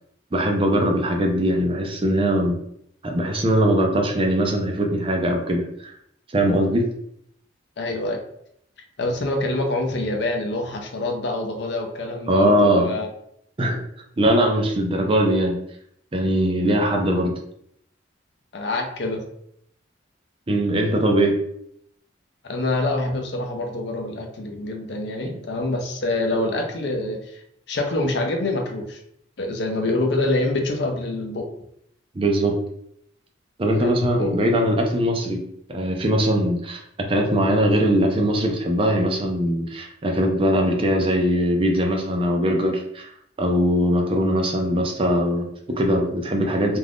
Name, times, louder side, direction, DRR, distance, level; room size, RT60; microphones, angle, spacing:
voice 1, 0.3-2.6 3.0-5.9 6.3-6.9 12.3-12.9 13.6-13.8 14.2-15.6 16.1-17.3 20.5-21.4 32.1-32.5 33.6-35.4 35.7-36.8 37.1-43.1 43.4-46.8, equal, 30° right, 2 dB, 0.5 m, -21 dB
voice 2, 7.8-8.2 9.0-13.1 18.5-19.2 22.4-27.4 27.7-29.0 29.4-31.5 33.7-34.4, left 2 dB, 60° left, 3 dB, 0.5 m, -26 dB
2.5 x 2.3 x 3.4 m, 0.72 s
head